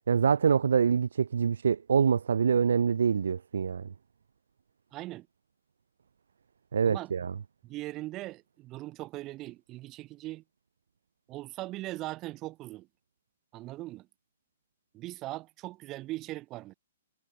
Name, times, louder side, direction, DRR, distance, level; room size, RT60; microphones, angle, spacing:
voice 1, 0.1-3.9 6.7-7.3, right 6 dB, 80° right, 1.2 m, -25 dB
voice 2, 4.9-5.3 6.9-7.1 7.6-10.4 11.3-12.9 13.5-14.1 14.9-16.7, right 17 dB, 25° right, 3.0 m, -40 dB
hypercardioid pair, 145°, 0 cm